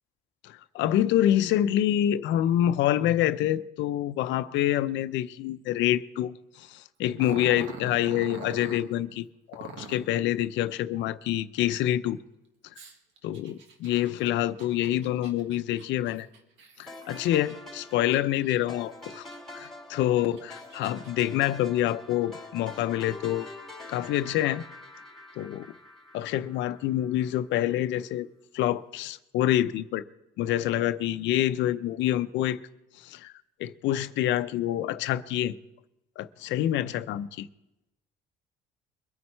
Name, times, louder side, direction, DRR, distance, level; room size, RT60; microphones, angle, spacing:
voice 1, 0.4-12.2 13.2-16.3 16.8-19.2 19.5-23.5 23.9-24.6 25.4-25.7 26.1-28.3 28.5-30.0 30.4-32.6 33.0-33.3 33.6-35.5 36.2-37.5, left 12 dB, 75° left, 0.6 m, -27 dB
Growling, 7.2-8.8 9.5-10.1 12.7-17.5 18.0-18.8 19.3-19.4 20.1-21.1, right 5 dB, 75° right, 1.8 m, -44 dB
sound 1, 16.9-27.1, left 2 dB, ahead, 4.0 m, -45 dB
22.5 x 9.4 x 4.5 m
supercardioid pair, 80°, 19 cm